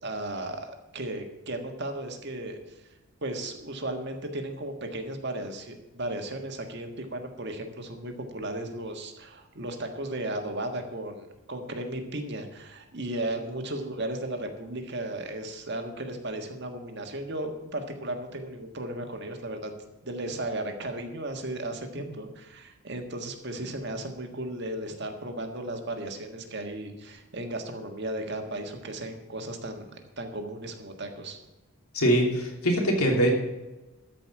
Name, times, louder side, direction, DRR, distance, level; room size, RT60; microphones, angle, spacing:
voice 1, 0.0-2.8 3.2-19.7 20.0-29.9 30.2-31.4, right 1 dB, 50° right, 5 dB, 1.6 m, -35 dB
voice 2, 31.9-33.3, right 1 dB, 85° left, 1 dB, 2.9 m, -23 dB
13.5 x 5.3 x 8.6 m, 1.1 s
head